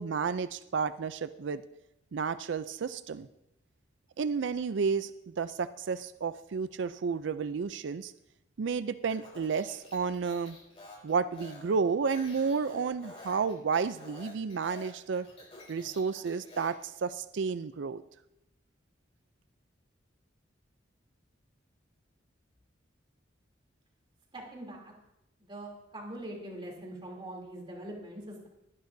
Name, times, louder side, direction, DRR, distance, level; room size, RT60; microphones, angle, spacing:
voice 1, 0.0-1.6 2.1-3.3 4.2-8.1 8.6-10.6 11.0-15.3 15.7-18.0, right 5 dB, 70° right, 13 dB, 0.4 m, -31 dB
Speech, 9.1-16.9, left 2 dB, 30° left, 3.8 m, -50 dB
voice 2, 24.3-24.9 25.4-28.5, right 1 dB, 25° right, -1 dB, 3.1 m, -43 dB
19.0 x 11.0 x 2.7 m, 0.87 s
head